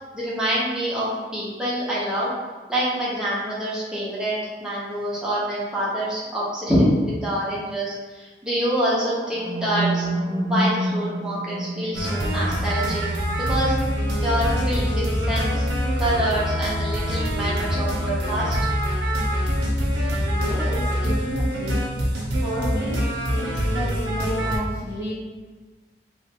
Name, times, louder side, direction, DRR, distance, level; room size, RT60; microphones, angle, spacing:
voice 1, 0.1-2.3 2.7-10.1 10.4-13.0 13.5-13.8 14.2-15.7 16.0-18.6, equal, 5° right, -8 dB, 0.7 m, -26 dB
sound 1, 8.9-16.9, right 1 dB, 25° right, 0.3 m, -30 dB
sound 2, 11.9-24.6, equal, 75° right, 0.7 m, -24 dB
voice 2, 20.3-21.9 22.4-23.0 23.3-25.2, equal, 60° left, -13 dB, 1.4 m, -31 dB
3.4 x 2.5 x 2.8 m, 1.3 s
head